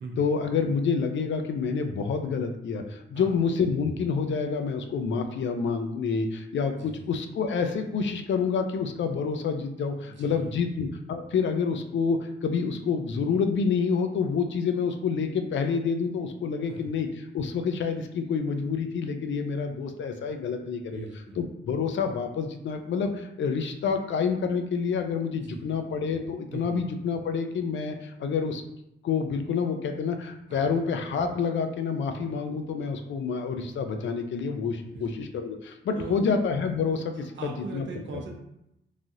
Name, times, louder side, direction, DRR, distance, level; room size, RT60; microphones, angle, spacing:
voice 1, 0.2-21.1 21.4-28.6 29.0-37.9, left 5 dB, 65° left, 6 dB, 0.4 m, -28 dB
voice 2, 6.7-7.1 10.0-10.7 16.6-16.9 20.6-21.4 25.4-25.7 26.5-26.8 30.5-30.8 34.7-35.1 35.9-36.3 37.1-38.3, right 3 dB, 60° right, 1 dB, 0.7 m, -40 dB
3.2 x 2.4 x 2.7 m, 0.82 s
cardioid pair, 95°, 21 cm